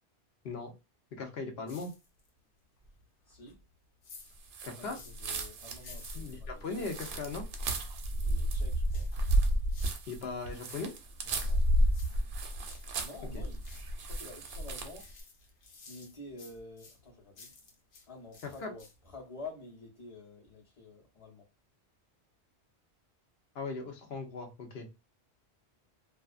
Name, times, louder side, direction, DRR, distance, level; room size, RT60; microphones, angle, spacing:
voice 1, 1.1-1.9 4.6-5.0 6.1-7.4 10.1-10.9 13.3-13.4 18.6-18.7 23.5-24.9, left 4 dB, 65° left, 0.9 m, -38 dB
sound 1, 1.7-2.4 2.8-5.3 5.7-7.9 8.9-10.1 10.4-12.9 13.3-14.1 14.4-18.1 18.3-19.1 19.5-19.6, left 3 dB, 90° left, 1.1 m, -55 dB
voice 2, 3.3-3.6 4.8-6.8 8.1-9.1 11.2-11.6 13.0-13.6 14.0-15.1 15.9-17.5 18.1-21.5, left 2 dB, 30° left, 0.9 m, -49 dB
sound 2, 4.5-15.1, right 1 dB, 65° right, 0.8 m, -32 dB
2.5 x 2.3 x 2.3 m
omnidirectional pair, 1.2 m